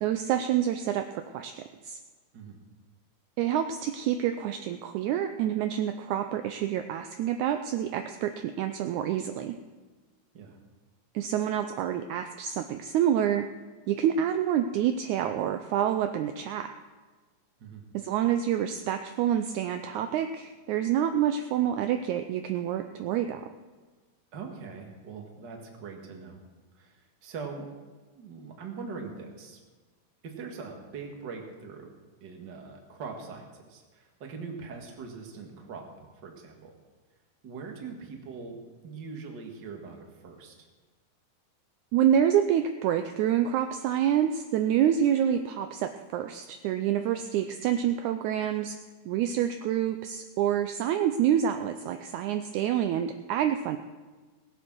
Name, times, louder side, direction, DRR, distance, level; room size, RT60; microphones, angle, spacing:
voice 1, 0.0-1.1 1.3-2.0 3.4-9.5 11.1-13.5 13.9-16.7 17.9-23.4 41.9-48.8 49.0-53.8, right 10 dB, 85° right, 7 dB, 1.7 m, -27 dB
voice 2, 24.3-26.4 26.7-27.7 28.1-29.6 30.2-31.9 32.2-36.7 37.4-38.6 38.8-40.7, right 5 dB, 40° right, 2 dB, 1.7 m, -42 dB
18.5 x 8.1 x 6.2 m, 1.3 s
omnidirectional pair, 4.0 m